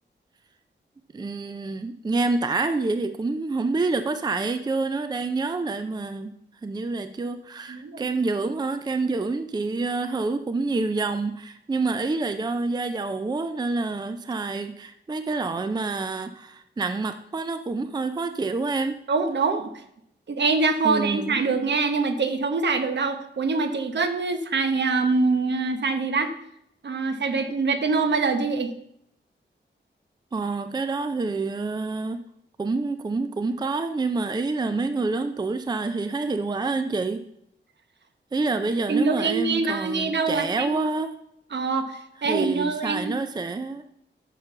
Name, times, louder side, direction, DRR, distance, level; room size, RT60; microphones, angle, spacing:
voice 1, 1.1-6.3 6.6-19.0 20.8-21.5 30.3-32.2 32.6-37.2 38.3-41.2 42.2-43.8, right 3 dB, 20° right, 9 dB, 0.5 m, -27 dB
voice 2, 7.7-8.1 19.1-19.7 20.3-26.3 26.8-28.7 38.9-40.7 41.5-43.1, right 4 dB, 65° right, 8 dB, 0.9 m, -24 dB
6.6 x 5.9 x 6.6 m, 0.75 s
wide cardioid pair, 120°, 20 cm